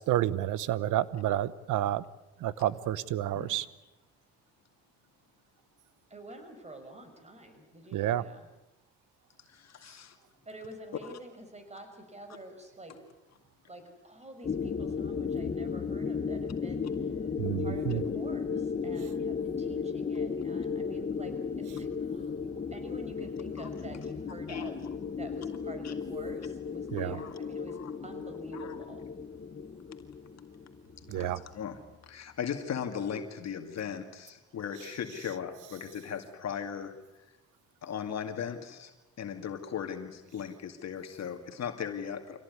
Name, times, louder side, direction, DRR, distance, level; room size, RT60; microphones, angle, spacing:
voice 1, 0.0-2.0 2.4-3.7 7.9-8.2 17.4-18.0 26.9-27.2 31.1-31.4, right 13 dB, 85° right, 18 dB, 1.0 m, -30 dB
voice 2, 6.1-8.5 10.5-12.9 13.7-17.1 17.6-22.3 22.7-24.8 25.2-27.8 28.0-29.0, right 1 dB, 20° right, 7 dB, 5.7 m, -47 dB
voice 3, 9.5-10.2 11.0-11.1 24.5-24.7 25.8-25.9 27.2-27.3 27.8-27.9 28.5-28.8 31.1-36.9 37.8-38.9 39.2-42.4, left 8 dB, 60° left, 6 dB, 2.2 m, -38 dB
sound 1, 14.4-31.4, left 5 dB, 30° left, 1.1 m, -35 dB
25.5 x 17.5 x 9.7 m, 1.0 s
cardioid pair, 90°, 30 cm